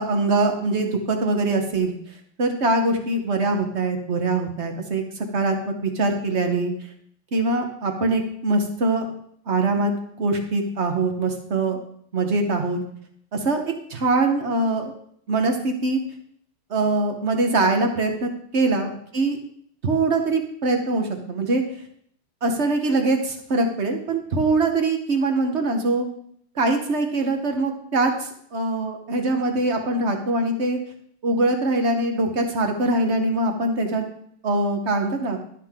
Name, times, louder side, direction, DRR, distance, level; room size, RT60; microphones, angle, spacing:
voice 1, 0.0-1.9 2.4-6.7 7.3-9.0 9.5-11.8 12.1-12.8 13.3-13.6 13.9-14.9 15.3-16.0 16.7-19.4 19.8-21.6 22.4-26.1 26.6-30.8 31.2-34.1 34.4-35.4, right 2 dB, 40° right, 4 dB, 1.1 m, -23 dB
11.5 x 7.4 x 3.7 m, 0.66 s
omnidirectional pair, 2.4 m